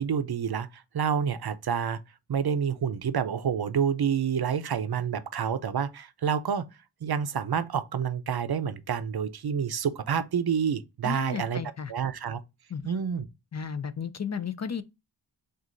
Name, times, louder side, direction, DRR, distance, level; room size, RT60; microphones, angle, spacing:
voice 1, 0.0-2.0 2.3-6.7 7.0-11.6 11.9-12.4 12.8-13.3, right 7 dB, 60° right, 0.6 m, -28 dB
voice 2, 11.0-11.9 12.7-12.9 13.5-14.8, left 6 dB, 40° left, 0.4 m, -34 dB
6.1 x 2.5 x 2.5 m
wide cardioid pair, 65°, 44 cm